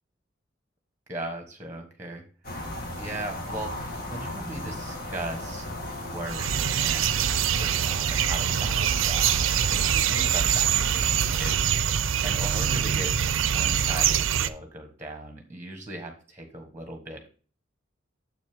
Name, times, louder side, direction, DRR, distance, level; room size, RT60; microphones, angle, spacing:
voice 1, 1.1-2.2 3.0-3.7 4.1-5.6 6.0-9.3 9.7-11.8 12.2-13.1 13.4-17.3, right 1 dB, 10° right, 4 dB, 1.3 m, -38 dB
sound 1, 2.4-11.6, left 1 dB, 50° left, 1.8 m, -36 dB
sound 2, 6.3-14.5, right 9 dB, 85° right, 0.5 m, -24 dB
7.5 x 6.3 x 3.5 m, 0.38 s
head